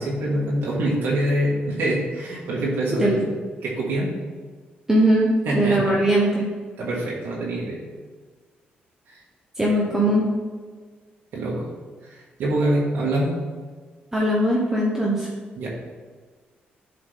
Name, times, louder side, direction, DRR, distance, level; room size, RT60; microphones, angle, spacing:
voice 1, 0.0-3.2 3.6-4.1 5.5-5.8 6.8-7.8 9.1-9.2 11.3-11.7 12.1-13.3 15.6-15.7, right 1 dB, 80° right, -5 dB, 1.9 m, -25 dB
voice 2, 4.9-6.5 9.6-10.3 14.1-15.3, right 1 dB, 15° right, -3 dB, 1.0 m, -20 dB
11.5 x 5.0 x 3.6 m, 1.5 s
cardioid pair, 155°, 4 cm